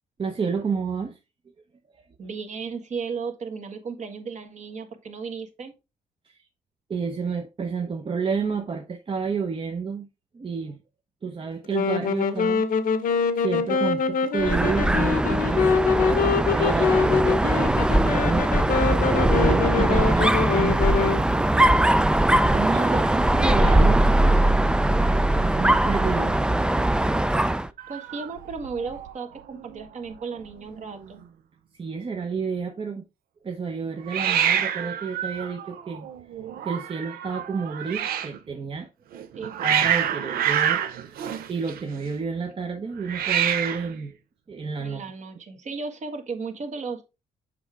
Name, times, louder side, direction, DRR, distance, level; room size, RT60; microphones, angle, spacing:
voice 1, 0.2-1.2 1.9-2.0 6.2-6.4 6.9-10.1 10.3-10.8 11.2-12.6 13.3-20.8 22.5-24.1 25.0-26.4 31.8-33.1 33.4-36.1 36.6-38.9 39.6-44.1 44.5-45.1, right 5 dB, 35° right, 0.8 m, -30 dB
voice 2, 2.2-5.7 22.8-24.0 27.9-31.2 39.3-39.6 44.8-47.0, right 5 dB, 50° right, 1.6 m, -35 dB
Wind instrument woodwind instrument, 11.7-21.2, left 5 dB, 65° left, 0.9 m, -24 dB
Dog, 14.4-27.7, right 1 dB, 5° right, 0.4 m, -21 dB
Hiss, 27.8-29.1 29.4-29.8 30.1-30.2 30.4-31.1 34.1-38.4 39.1-42.1 43.0-44.0, right 9 dB, 80° right, 0.7 m, -27 dB
6.9 x 4.9 x 3.4 m
cardioid pair, 85°, 15 cm